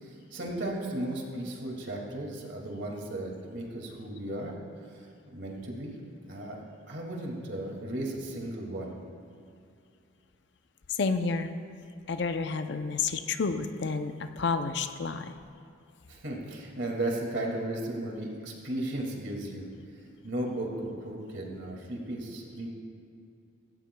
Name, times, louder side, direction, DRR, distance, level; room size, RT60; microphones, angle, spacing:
voice 1, 0.0-4.6 4.9-5.9 6.3-6.6 6.9-8.9 16.1-19.6 20.2-22.7, right 1 dB, 60° right, -1 dB, 2.2 m, -35 dB
voice 2, 10.9-11.6 12.1-15.4, left 4 dB, 55° left, 8 dB, 0.5 m, -30 dB
17.0 x 17.0 x 2.3 m, 2.5 s
head